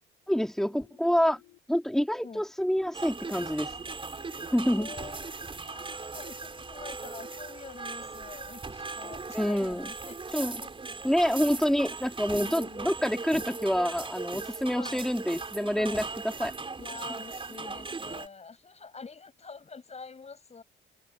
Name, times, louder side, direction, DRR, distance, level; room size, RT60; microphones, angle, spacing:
voice 1, 0.3-1.4 1.7-3.7 4.5-4.9 9.3-9.9 10.3-10.6 11.0-16.5, equal, ahead, 2.8 m, -27 dB
sound 1, 0.6-1.6 3.6-4.6 6.6-7.6, left 18 dB, 85° left, 3.2 m, -58 dB
sound 2, 2.9-18.3, right 4 dB, 25° right, 4.2 m, -39 dB
voice 2, 4.5-10.7 12.3-12.9 14.7-15.0 15.7-16.1 16.8-20.6, left 5 dB, 35° left, 5.4 m, -46 dB
cardioid pair, 90°, 20 cm